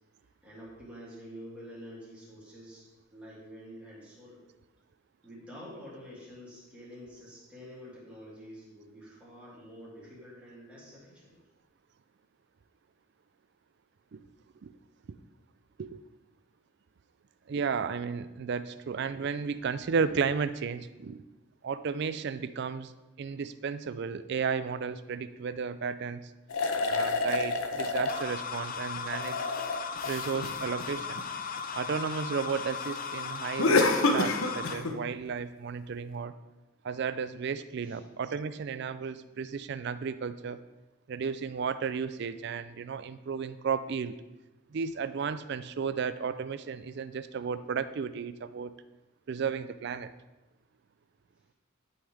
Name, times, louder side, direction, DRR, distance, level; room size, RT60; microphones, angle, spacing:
voice 1, 0.4-4.4 5.2-11.4 37.8-38.0, equal, 5° right, -7 dB, 2.6 m, -48 dB
voice 2, 17.5-21.2 21.6-22.9 23.2-26.3 26.9-29.4 30.0-31.2 31.7-33.9 34.1-36.3 36.8-40.6 41.1-44.2 44.7-48.7 49.3-50.1, right 6 dB, 55° right, 13 dB, 0.4 m, -33 dB
sound 1, 26.5-28.3 29.0-31.6 33.6-35.0, left 3 dB, 80° left, 0.8 m, -28 dB
sound 2, 28.1-34.7, left 6 dB, 40° left, 0.5 m, -37 dB
11.5 x 5.5 x 3.4 m, 1.0 s
head